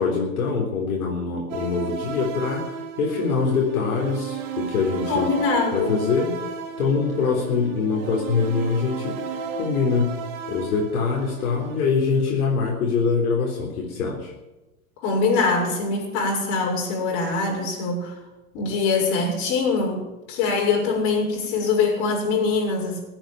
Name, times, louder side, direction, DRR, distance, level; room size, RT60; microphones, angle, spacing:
voice 1, 0.0-5.3 5.7-6.4 6.8-9.2 9.6-10.2 10.5-14.3, left 5 dB, 80° left, -2 dB, 3.9 m, -24 dB
sound 1, 1.5-11.9, right 5 dB, 45° right, 3.0 m, -34 dB
voice 2, 5.1-6.0 15.0-18.2 18.5-23.0, left 4 dB, 55° left, 0 dB, 6.5 m, -23 dB
16.0 x 9.0 x 9.3 m, 1.0 s
hypercardioid pair, 120°, 43 cm